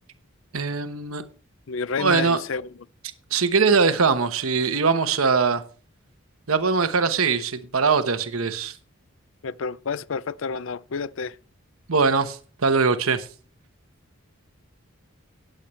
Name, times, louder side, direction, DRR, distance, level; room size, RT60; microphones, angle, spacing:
voice 1, 0.5-1.2 2.0-2.4 3.3-5.6 6.5-8.8 11.9-13.3, right 5 dB, 90° right, 1.0 m, -21 dB
voice 2, 1.7-2.7 9.4-11.4, left 5 dB, 65° left, 0.5 m, -30 dB
15.5 x 10.0 x 3.2 m
head